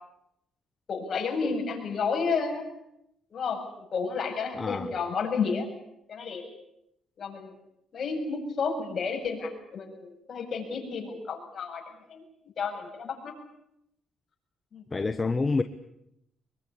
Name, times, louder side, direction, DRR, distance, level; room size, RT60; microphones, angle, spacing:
voice 1, 0.9-2.6 3.3-3.6 3.9-5.7 6.1-6.5 7.2-7.5 7.9-11.8 12.1-12.2 12.6-13.4 14.7-14.8, left 5 dB, 50° left, 2 dB, 7.9 m, -31 dB
voice 2, 4.6-4.9 14.9-15.6, left 3 dB, 25° left, 9 dB, 1.2 m, -27 dB
25.0 x 22.5 x 8.7 m, 0.81 s
cardioid pair, 90°, 0 cm